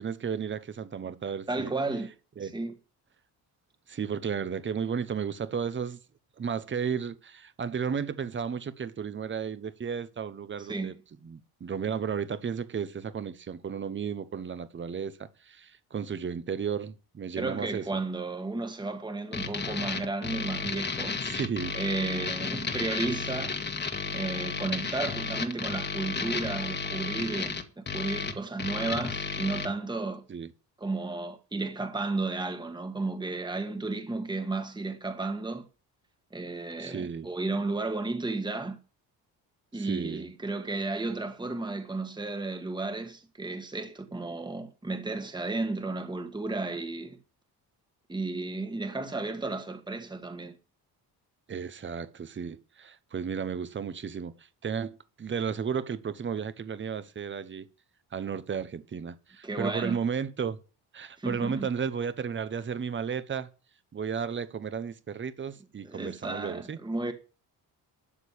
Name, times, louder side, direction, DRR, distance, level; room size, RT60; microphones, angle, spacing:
voice 1, 0.0-1.7 2.4-2.5 3.9-6.0 6.4-11.0 11.2-18.0 21.2-21.7 30.3-30.5 36.8-37.3 39.7-40.3 51.5-57.7 58.1-60.6 60.9-63.5 63.9-66.8, right 6 dB, 30° right, 1.0 m, -33 dB
voice 2, 1.5-2.1 2.4-2.7 10.6-10.9 17.4-21.2 21.7-23.6 24.1-30.2 30.8-35.7 36.3-38.8 39.7-47.2 48.1-50.6 59.4-60.0 61.2-61.7 65.8-67.1, right 3 dB, 10° right, 1.6 m, -33 dB
sound 1, 19.3-29.7, left 4 dB, 25° left, 1.6 m, -33 dB
12.5 x 6.7 x 8.5 m
cardioid pair, 140°, 40 cm